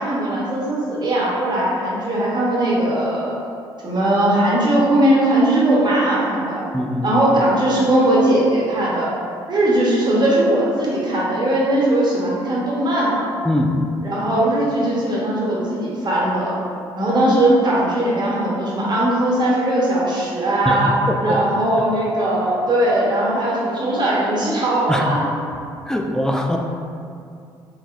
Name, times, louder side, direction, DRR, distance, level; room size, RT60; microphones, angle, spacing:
voice 1, 0.0-3.3 3.8-6.6 7.0-9.1 9.5-13.3 14.0-16.6 16.9-20.9 21.2-25.2, right 1 dB, 35° right, -6 dB, 1.0 m, -19 dB
voice 2, 6.7-7.2 13.4-13.8 20.7-21.4 24.9-25.1 25.9-26.6, left 1 dB, 5° left, 2 dB, 0.3 m, -22 dB
2.8 x 2.8 x 2.4 m, 2.3 s
hypercardioid pair, 55°, 12 cm